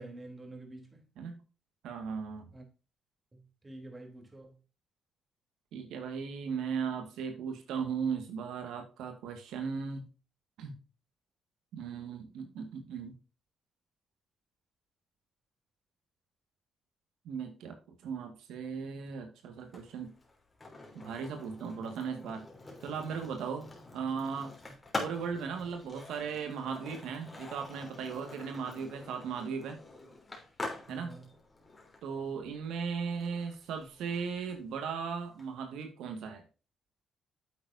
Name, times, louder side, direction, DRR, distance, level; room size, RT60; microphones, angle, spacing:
voice 1, 0.0-1.1 2.5-2.6 3.3-4.6 12.3-12.5 24.6-24.7 30.6-31.3 32.1-32.4, right 2 dB, 25° right, 3.3 m, -49 dB
voice 2, 1.8-2.5 5.7-10.0 10.6-10.7 11.7-13.1 17.3-20.1 20.9-22.5 22.8-23.7 23.9-24.5 25.0-29.8 30.9-31.2 32.0-36.4, right 6 dB, 85° right, 1.8 m, -37 dB
Skateboard, 19.6-35.5, left 2 dB, 25° left, 3.3 m, -46 dB
9.5 x 8.1 x 2.7 m
cardioid pair, 90°, 0 cm